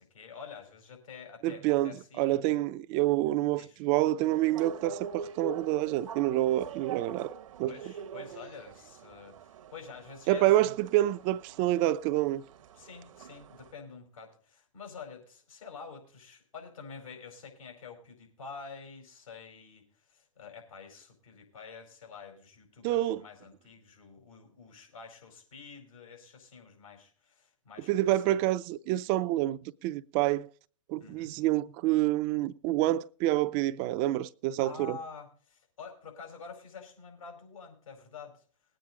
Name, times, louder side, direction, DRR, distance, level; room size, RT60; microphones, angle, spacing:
voice 1, 0.0-2.4 3.6-3.8 7.6-10.7 12.7-28.4 31.0-31.3 34.6-38.4, left 5 dB, 75° left, 4.8 m, -48 dB
voice 2, 1.4-7.3 7.6-7.8 10.3-12.4 22.8-23.2 27.9-30.5 30.9-35.0, right 15 dB, 40° right, 0.5 m, -27 dB
sound 1, 4.2-13.7, right 7 dB, 70° right, 0.9 m, -44 dB
19.5 x 8.9 x 3.7 m
hypercardioid pair, 110°, 17 cm